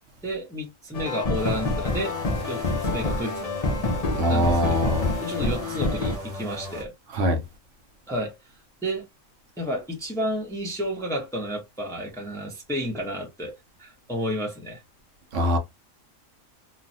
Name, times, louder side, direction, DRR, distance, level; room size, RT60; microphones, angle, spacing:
voice 1, 0.2-2.2 2.5-3.5 4.3-4.8 5.2-6.9 8.1-8.3 8.8-9.1 9.6-13.5 13.8-14.8, equal, 5° left, 0.7 m, -31 dB
sound 1, 0.9-6.2, left 2 dB, 55° left, 0.4 m, -27 dB
sound 2, 1.3-6.9, equal, 30° right, 1.0 m, -37 dB
voice 2, 4.2-5.1 7.1-7.4 15.3-15.6, equal, 65° right, 1.0 m, -22 dB
3.0 x 2.2 x 2.6 m
omnidirectional pair, 1.4 m